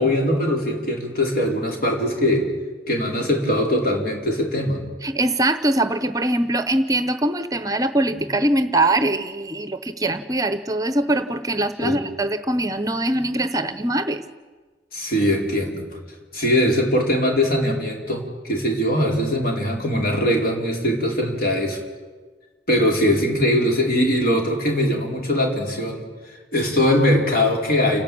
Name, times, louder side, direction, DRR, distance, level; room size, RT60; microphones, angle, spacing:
voice 1, 0.0-2.5 2.9-4.8 11.8-12.0 14.9-15.9 16.3-21.8 22.7-26.0 26.5-28.0, left 1 dB, 55° left, 0 dB, 4.6 m, -21 dB
voice 2, 5.0-14.2, right 1 dB, 20° right, 11 dB, 0.8 m, -22 dB
29.5 x 10.5 x 8.7 m, 1.3 s
head